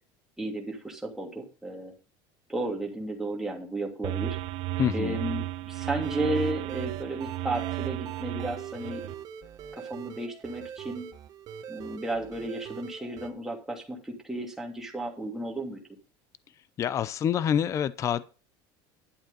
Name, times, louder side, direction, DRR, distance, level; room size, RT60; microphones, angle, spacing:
voice 1, 0.4-1.9 2.5-4.4 4.9-9.1 9.7-11.1 11.7-15.8, right 1 dB, 5° right, 2.7 m, -33 dB
sound 1, 4.0-9.1, right 17 dB, 55° right, 0.9 m, -34 dB
voice 2, 4.8-5.2 16.8-18.2, left 9 dB, 30° left, 0.6 m, -26 dB
sound 2, 6.0-13.3, right 8 dB, 35° right, 1.4 m, -42 dB
11.5 x 7.8 x 5.5 m
cardioid pair, 155°, 11 cm